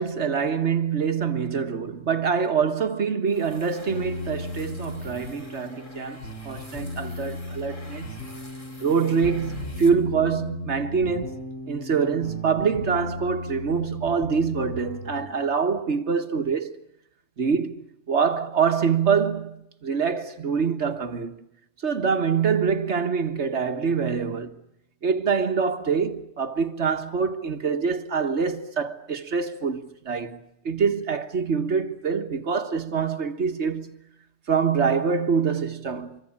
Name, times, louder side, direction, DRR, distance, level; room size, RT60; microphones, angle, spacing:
voice 1, 0.0-8.3 8.8-16.7 17.4-21.3 21.8-24.5 25.0-34.0 34.5-36.2, right 6 dB, 75° right, 1.8 m, -25 dB
sound 1, 3.3-10.4, left 1 dB, 45° left, 3.8 m, -49 dB
sound 2, 3.9-15.2, left 2 dB, 80° left, 4.5 m, -36 dB
26.0 x 23.5 x 8.7 m
omnidirectional pair, 1.2 m